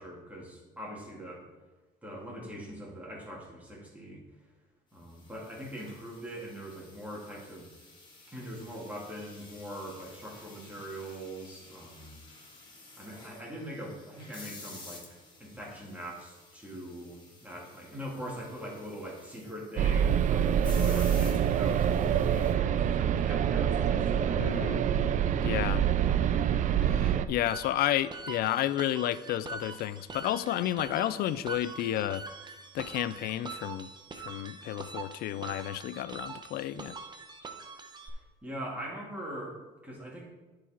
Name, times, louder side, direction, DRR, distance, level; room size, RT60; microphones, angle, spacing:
voice 1, 0.0-1.4 2.0-4.2 4.9-7.7 8.3-12.2 13.0-15.1 15.4-24.7 38.1-40.3, equal, 10° right, 2.7 m, -42 dB
sound 1, 5.1-22.5, left 2 dB, 25° left, 2.1 m, -52 dB
sound 2, 19.8-27.3, right 9 dB, 50° right, 0.4 m, -26 dB
voice 2, 24.4-24.8 25.4-25.9 26.9-32.3 32.7-33.9 34.2-37.0, left 13 dB, 65° left, 0.4 m, -31 dB
sound 3, 27.5-38.1, right 4 dB, 25° right, 0.9 m, -43 dB
9.7 x 4.8 x 4.5 m
cardioid pair, 110°, 17 cm